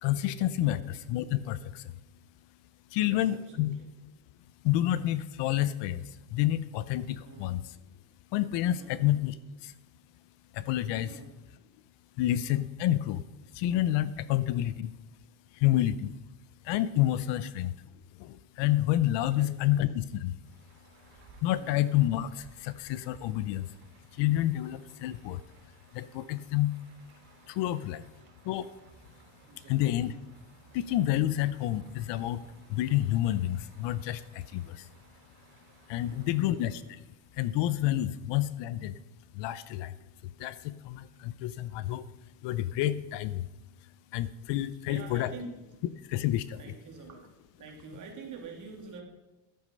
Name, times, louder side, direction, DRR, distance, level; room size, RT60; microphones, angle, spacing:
voice 1, 0.0-2.0 2.9-3.8 4.6-7.6 8.3-9.8 10.5-11.1 12.2-15.0 15.5-16.1 16.6-17.7 18.1-20.4 21.4-23.8 24.1-25.4 25.9-26.8 27.5-28.1 28.4-28.7 29.6-30.1 30.7-34.9 35.9-37.1 37.3-39.0 39.3-40.0 40.2-43.5 43.8-45.3 46.0-46.6, left 13 dB, 65° left, 16 dB, 0.7 m, -29 dB
voice 2, 3.0-3.7 7.2-7.5 8.8-9.1 11.1-11.3 17.3-17.5 19.3-19.7 21.5-21.8 27.7-28.0 29.5-29.8 36.0-36.6 44.9-45.5 45.9-46.0 46.6-47.3 47.6-49.0, right 4 dB, 40° right, 0 dB, 2.9 m, -46 dB
Rain, 20.4-37.4, right 4 dB, 55° right, 3.9 m, -59 dB
11.5 x 8.5 x 5.3 m, 1.0 s
cardioid pair, 145°, 47 cm